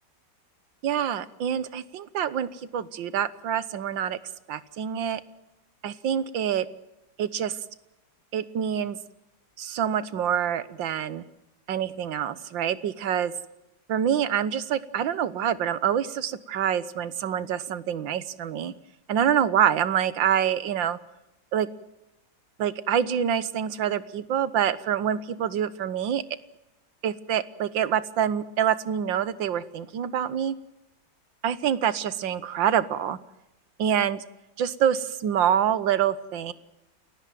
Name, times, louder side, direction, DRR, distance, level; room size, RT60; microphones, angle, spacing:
voice 1, 0.8-4.2 4.5-5.2 5.8-6.7 7.2-7.6 8.3-9.0 9.6-11.2 11.7-13.3 13.9-18.7 19.1-21.0 21.5-21.7 22.6-26.2 27.0-30.6 31.4-33.2 33.8-34.2 34.6-36.5, right 9 dB, 85° right, 16 dB, 1.8 m, -26 dB
29.0 x 15.5 x 9.2 m, 0.93 s
omnidirectional pair, 2.0 m